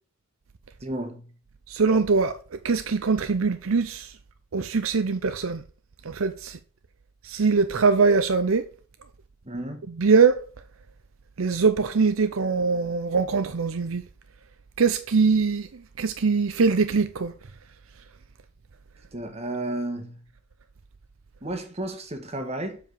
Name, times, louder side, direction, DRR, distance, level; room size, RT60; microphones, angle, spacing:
voice 1, 0.8-1.3 9.4-9.8 19.1-20.2 21.4-22.8, right 1 dB, 30° right, 1.5 m, -32 dB
voice 2, 1.7-2.4 2.6-4.1 4.5-5.6 6.1-6.6 7.3-8.6 10.0-10.4 11.4-14.0 14.8-15.7 16.0-17.3, right 4 dB, 75° right, 0.6 m, -22 dB
7.6 x 5.0 x 6.8 m
head